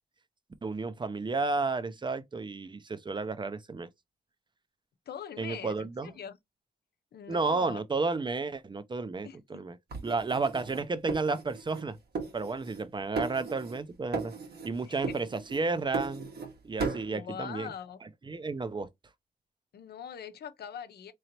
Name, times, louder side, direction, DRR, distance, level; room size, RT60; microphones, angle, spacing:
voice 1, 0.6-3.9 5.4-6.2 7.3-9.8 10.0-12.0 12.3-14.3 14.6-16.3 16.6-17.7 18.2-18.9, right 3 dB, 30° right, 0.6 m, -32 dB
voice 2, 5.1-6.4 7.1-7.8 9.2-9.4 14.9-15.2 17.1-18.0 19.7-21.1, left 8 dB, 80° left, 0.7 m, -42 dB
sound 1, 9.9-11.9 12.1-12.9 13.2-13.8 14.1-14.7 15.0-16.5 16.8-17.1, right 4 dB, 80° right, 1.4 m, -36 dB
3.9 x 3.1 x 2.9 m
cardioid pair, 75°, 16 cm